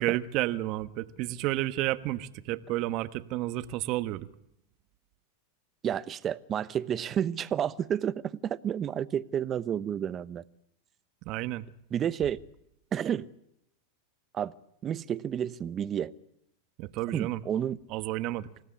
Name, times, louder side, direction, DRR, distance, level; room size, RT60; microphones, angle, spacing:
voice 1, 0.0-4.3 11.2-11.7 16.8-17.4 17.9-18.5, right 16 dB, 50° right, 1.3 m, -31 dB
voice 2, 5.8-10.4 11.9-12.4 12.9-13.3 14.3-14.5 14.8-16.1 17.1-17.8, right 9 dB, 30° right, 0.9 m, -30 dB
27.5 x 17.0 x 8.7 m
hypercardioid pair, 120°, 0 cm